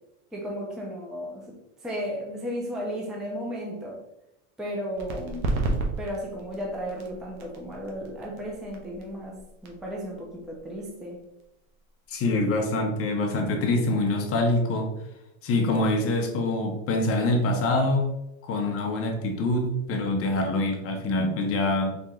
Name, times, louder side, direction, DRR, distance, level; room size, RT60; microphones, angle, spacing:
voice 1, 0.3-4.0 4.6-5.6 6.0-9.4 9.6-11.2, equal, ahead, -2 dB, 0.4 m, -34 dB
sound 1, 5.0-12.3, right 2 dB, 90° right, 1.1 m, -34 dB
voice 2, 12.1-14.9 15.4-18.0 18.4-21.9, left 2 dB, 35° left, 2 dB, 0.7 m, -25 dB
4.3 x 2.9 x 3.5 m, 0.89 s
supercardioid pair, 145°, 42 cm